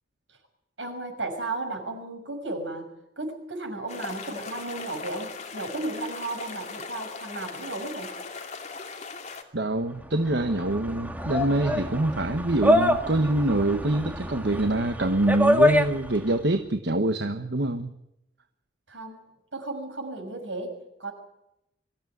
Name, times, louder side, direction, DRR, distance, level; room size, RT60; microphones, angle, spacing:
voice 1, 0.8-2.9 3.2-8.1 18.9-19.2 19.5-21.1, right 2 dB, 80° right, 4 dB, 6.4 m, -34 dB
sound 1, 3.9-9.4, left 4 dB, 40° left, 2.7 m, -39 dB
voice 2, 9.5-17.9, right 2 dB, 65° right, 8 dB, 1.2 m, -25 dB
sound 2, 10.0-16.4, left 1 dB, 10° right, 1.8 m, -26 dB
24.0 x 15.0 x 9.5 m, 0.84 s
head